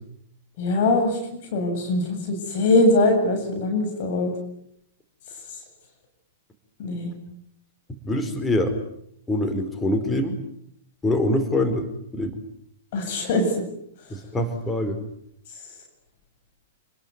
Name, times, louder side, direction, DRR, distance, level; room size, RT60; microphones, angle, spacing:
voice 1, 0.6-4.3 6.8-7.1 12.9-13.6, left 2 dB, 55° left, 4 dB, 7.9 m, -22 dB
voice 2, 8.0-8.8 9.3-10.4 11.0-11.9 12.1-12.4 14.1-15.0, left 1 dB, 15° left, 7 dB, 4.5 m, -24 dB
29.0 x 20.5 x 9.6 m, 0.72 s
figure-of-eight pair, 105°, 0 cm